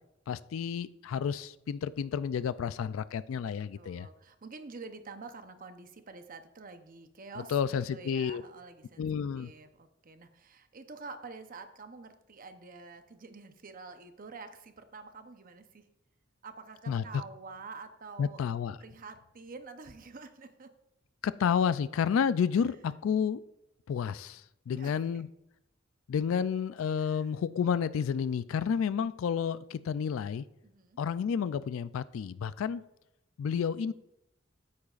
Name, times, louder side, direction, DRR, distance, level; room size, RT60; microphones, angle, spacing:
voice 1, 0.3-4.1 7.5-8.4 9.0-9.5 16.9-17.2 18.2-18.8 21.2-23.4 23.9-25.3 26.1-30.4 31.0-32.8 33.4-33.9, left 7 dB, 80° left, 15 dB, 0.3 m, -30 dB
voice 2, 3.3-9.1 9.4-15.9 16.4-18.4 18.8-20.7 24.7-25.2 27.0-27.3 30.6-31.0, right 4 dB, 45° right, 8 dB, 0.8 m, -48 dB
14.5 x 8.6 x 2.5 m, 0.85 s
head